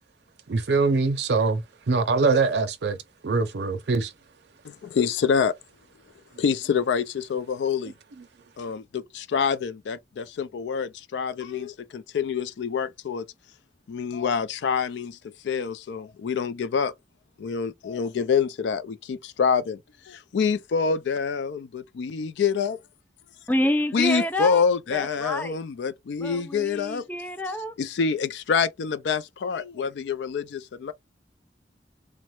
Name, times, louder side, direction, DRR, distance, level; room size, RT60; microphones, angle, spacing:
voice 1, 0.5-3.0 3.2-4.1, right 4 dB, 75° right, 0.5 m, -23 dB
voice 2, 4.6-5.5 6.4-7.9 8.6-13.3 13.9-16.9 17.4-19.8 20.0-22.8 23.9-27.1 27.8-30.9, left 6 dB, 85° left, 0.4 m, -26 dB
voice 3, 23.5-24.6 24.9-25.6 26.2-27.7, left 1 dB, 10° left, 0.4 m, -28 dB
3.1 x 2.1 x 3.0 m
head